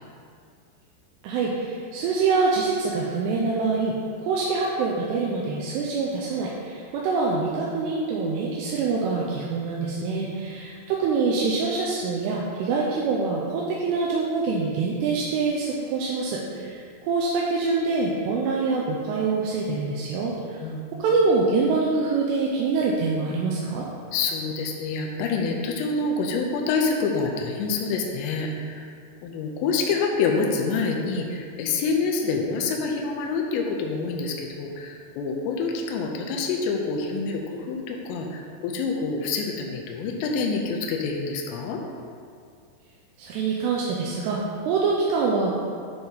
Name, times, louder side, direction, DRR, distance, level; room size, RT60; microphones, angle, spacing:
voice 1, 1.2-20.7 21.0-23.9 43.2-45.5, right 4 dB, 85° right, -4 dB, 2.7 m, -25 dB
voice 2, 9.9-10.3 16.5-16.8 20.6-20.8 24.1-28.9 29.2-41.8, left 4 dB, 85° left, 1 dB, 2.9 m, -27 dB
9.1 x 3.5 x 4.0 m, 2.2 s
omnidirectional pair, 5.0 m